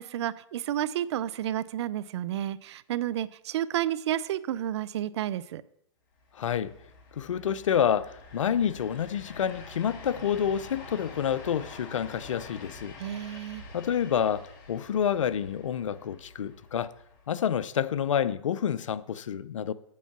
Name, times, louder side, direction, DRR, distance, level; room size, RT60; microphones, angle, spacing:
voice 1, 0.0-5.6 13.0-13.6, right 12 dB, 60° right, 0.5 m, -31 dB
sound 1, 6.2-18.1, left 3 dB, 45° left, 2.3 m, -47 dB
voice 2, 6.3-6.7 7.1-12.9 13.7-16.9 17.3-19.7, left 8 dB, 85° left, 0.5 m, -28 dB
8.3 x 5.5 x 5.9 m
hypercardioid pair, 130°, 16 cm